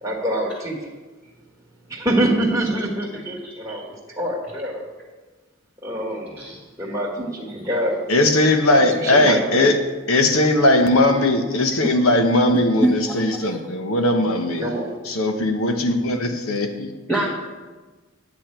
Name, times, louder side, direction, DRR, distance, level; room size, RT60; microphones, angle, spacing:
voice 1, 0.0-0.9 1.9-4.9 5.8-8.1 8.7-9.7 14.6-14.9, right 1 dB, 15° right, -4 dB, 1.6 m, -25 dB
voice 2, 3.1-3.8 6.4-6.6 7.6-7.7 12.8-13.6 17.1-17.2, right 1 dB, 5° left, -4 dB, 1.2 m, -25 dB
voice 3, 8.1-9.8 10.1-14.7 15.0-16.9, left 1 dB, 75° left, 5 dB, 1.1 m, -19 dB
9.9 x 8.9 x 4.5 m, 1.3 s
head